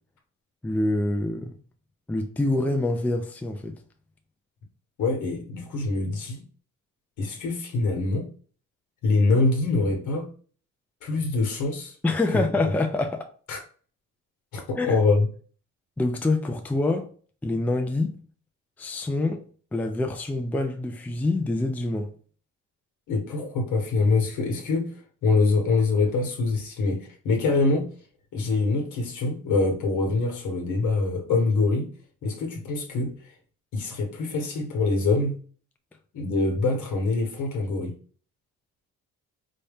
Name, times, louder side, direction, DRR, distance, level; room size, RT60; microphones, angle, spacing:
voice 1, 0.6-1.6 2.1-3.8 12.0-13.3 14.8-15.0 16.0-17.1 17.4-18.2 18.8-19.4 19.7-22.1, left 2 dB, 5° left, 0.4 m, -26 dB
voice 2, 5.0-6.4 7.2-8.3 9.0-10.3 11.0-11.9 12.3-12.4 13.5-13.6 14.5-15.3 23.1-24.9 25.2-27.9 28.3-31.9 32.2-33.1 33.7-35.4 36.1-37.9, left 3 dB, 80° left, 1.1 m, -24 dB
4.1 x 2.3 x 3.5 m
cardioid pair, 90°, 30 cm